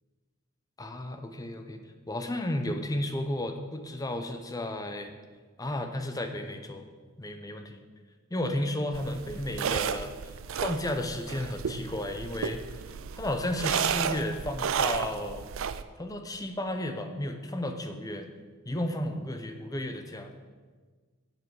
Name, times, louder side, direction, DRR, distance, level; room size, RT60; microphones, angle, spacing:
voice 1, 0.8-1.8 2.1-5.1 5.6-6.9 7.2-7.8 8.3-10.1 10.5-12.6 13.1-15.5 16.0-18.3 18.7-20.3, left 1 dB, 15° left, 6 dB, 0.7 m, -33 dB
sound 1, 8.9-15.8, right 7 dB, 70° right, 0.4 m, -32 dB
7.8 x 7.6 x 6.3 m, 1.5 s
head